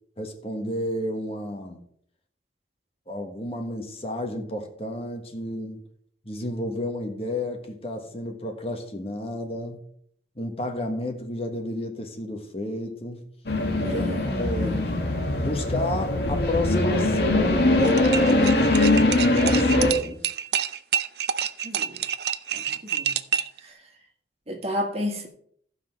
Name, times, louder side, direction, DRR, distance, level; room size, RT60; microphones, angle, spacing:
voice 1, 0.2-1.8 3.1-5.8 6.2-9.8 10.4-13.3 13.7-14.1 14.3-14.8 15.4-20.2, left 1 dB, 35° left, 3 dB, 1.4 m, -31 dB
sound 1, 13.5-19.9, left 2 dB, 65° left, 1.8 m, -22 dB
voice 2, 13.8-14.3 14.5-14.8 21.6-22.0 22.5-23.1 23.6-23.8 24.5-25.3, equal, 35° right, 3 dB, 1.8 m, -32 dB
sound 2, 17.8-23.6, right 9 dB, 65° right, 0.5 m, -28 dB
15.0 x 5.7 x 4.5 m, 0.64 s
head